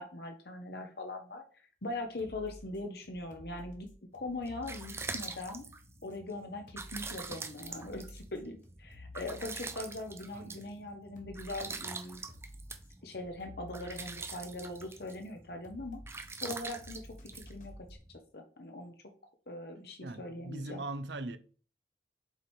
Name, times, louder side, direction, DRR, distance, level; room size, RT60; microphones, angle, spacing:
voice 1, 0.0-1.4 1.8-3.9 4.1-5.7 6.0-12.2 13.0-17.0 17.3-17.7 18.3-18.9 19.5-20.8, left 2 dB, 65° left, 1.0 m, -41 dB
sound 1, 1.8-18.0, left 1 dB, 45° left, 1.2 m, -53 dB
sound 2, 4.2-18.2, right 4 dB, 15° right, 0.5 m, -44 dB
voice 2, 10.3-10.8 20.0-21.4, right 2 dB, 80° right, 0.7 m, -41 dB
7.7 x 3.4 x 4.4 m
head